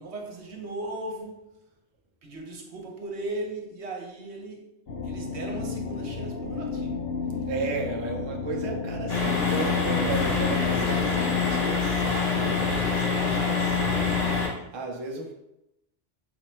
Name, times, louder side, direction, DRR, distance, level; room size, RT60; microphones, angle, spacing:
voice 1, 0.0-1.4 2.2-4.7 5.0-7.1, right 2 dB, 65° right, 1 dB, 1.1 m, -37 dB
sound 1, 4.9-11.6, left 4 dB, 60° left, 0.8 m, -32 dB
voice 2, 7.5-15.3, right 3 dB, 35° right, 0 dB, 0.4 m, -35 dB
sound 2, 9.1-14.5, left 5 dB, 85° left, 1.5 m, -25 dB
4.8 x 2.1 x 4.3 m, 0.87 s
omnidirectional pair, 1.2 m